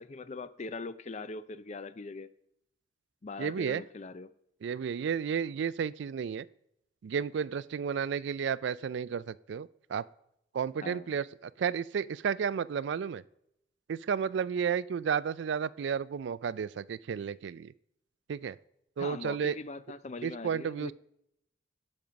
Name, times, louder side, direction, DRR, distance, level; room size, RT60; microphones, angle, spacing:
voice 1, 0.0-2.3 3.2-4.3 10.8-11.2 19.0-20.9, left 3 dB, 35° left, 0.4 m, -41 dB
voice 2, 3.4-3.8 4.6-6.5 7.0-10.0 10.5-13.2 13.9-17.7 18.3-18.6 19.0-19.6 20.2-20.9, right 7 dB, 65° right, 0.3 m, -32 dB
12.5 x 5.3 x 5.8 m
head